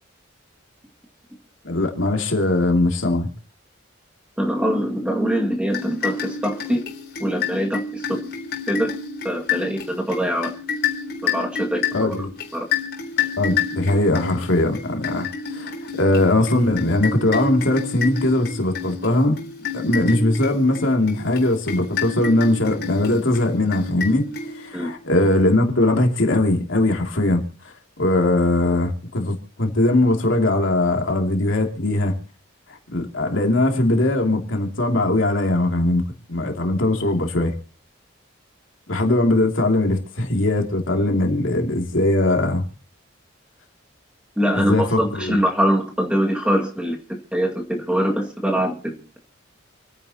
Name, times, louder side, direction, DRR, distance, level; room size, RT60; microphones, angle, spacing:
voice 1, 1.6-3.3 11.9-12.3 13.4-19.4 19.7-24.2 24.5-32.1 32.9-36.0 36.3-37.5 38.9-42.6 44.5-45.4, left 1 dB, 70° left, 2 dB, 2.7 m, -20 dB
voice 2, 4.4-6.8 7.2-8.3 8.7-8.9 9.2-10.5 11.2-12.1 12.5-12.7 24.7-24.9 44.4-47.0 47.3-49.0, equal, 5° right, 1 dB, 2.1 m, -23 dB
sound 1, 5.7-24.9, left 6 dB, 50° left, 3.8 m, -29 dB
28.5 x 9.7 x 2.9 m, 0.39 s
head